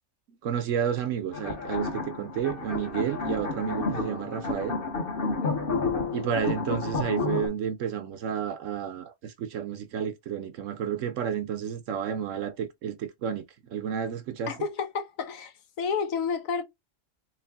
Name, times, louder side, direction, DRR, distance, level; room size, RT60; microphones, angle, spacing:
voice 1, 0.3-4.8 6.1-14.5, right 8 dB, 65° right, 0.9 m, -31 dB
sound 1, 1.3-7.5, left 3 dB, 40° left, 1.3 m, -31 dB
voice 2, 14.5-16.6, left 6 dB, 70° left, 1.1 m, -31 dB
3.2 x 3.2 x 3.4 m
omnidirectional pair, 1.5 m